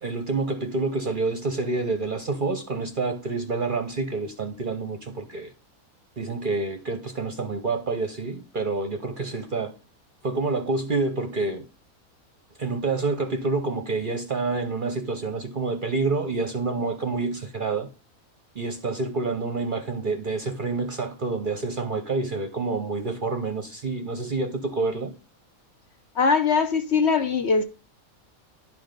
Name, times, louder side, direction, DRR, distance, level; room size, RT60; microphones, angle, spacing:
voice 1, 0.0-5.5 6.2-9.7 10.2-11.7 12.6-17.9 18.5-25.1, right 3 dB, 45° right, 0.7 m, -28 dB
voice 2, 26.2-27.6, left 5 dB, 55° left, 1.0 m, -21 dB
11.0 x 5.7 x 5.1 m
omnidirectional pair, 1.5 m